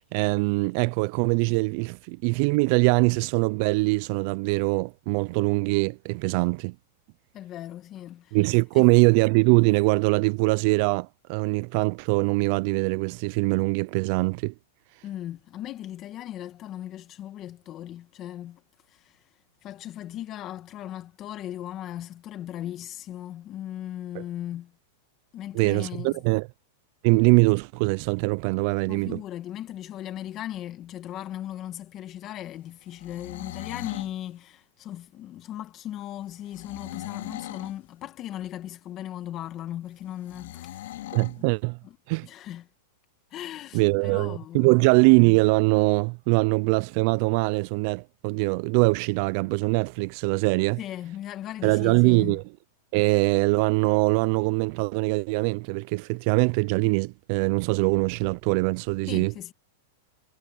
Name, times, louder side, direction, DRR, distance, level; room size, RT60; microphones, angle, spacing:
voice 1, 0.1-6.7 8.3-14.5 24.1-24.2 25.5-26.5 27.0-29.2 41.1-41.8 42.1-42.3 43.7-50.8 51.6-52.4 52.9-59.3, right 29 dB, 50° right, 0.4 m, -22 dB
voice 2, 7.3-8.4 8.7-8.9 15.0-18.6 18.9-19.3 19.6-24.7 25.3-26.2 28.9-40.9 41.4-41.5 41.8-42.0 42.2-42.7 43.3-44.9 50.8-52.4 59.1-59.5, left 12 dB, 30° left, 1.6 m, -37 dB
sound 1, 32.9-34.1 36.5-37.8 40.3-41.4, left 14 dB, 75° left, 2.1 m, -39 dB
supercardioid pair, 140°, 0 cm